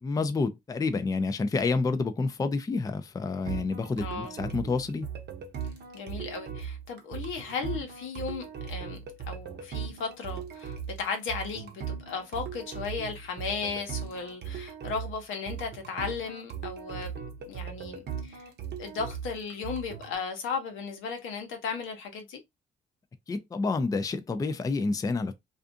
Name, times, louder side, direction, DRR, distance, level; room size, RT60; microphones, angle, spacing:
voice 1, 0.0-5.1 23.3-25.3, left 3 dB, 20° left, 0.4 m, -29 dB
sound 1, 3.5-20.1, right 7 dB, 55° right, 0.7 m, -39 dB
voice 2, 4.0-4.3 5.9-9.0 9.3-17.1 17.5-18.5 18.8-22.4, left 5 dB, 85° left, 0.9 m, -35 dB
2.5 x 2.4 x 2.5 m
cardioid pair, 90°, 20 cm